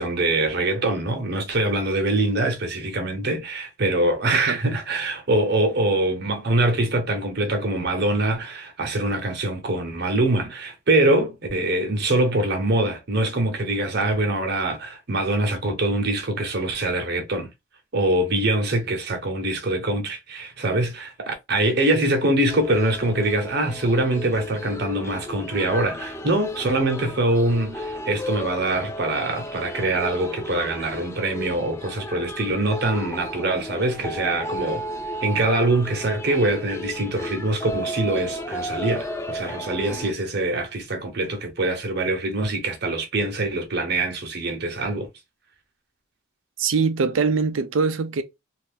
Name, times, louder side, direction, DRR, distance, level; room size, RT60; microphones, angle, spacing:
voice 1, 0.0-17.5 17.9-34.8 35.2-45.1, right 2 dB, 55° right, 0.9 m, -24 dB
sound 1, 22.5-40.1, left 1 dB, 15° left, 0.3 m, -34 dB
voice 2, 46.6-48.2, right 5 dB, 75° right, 0.5 m, -22 dB
2.7 x 2.5 x 3.5 m
head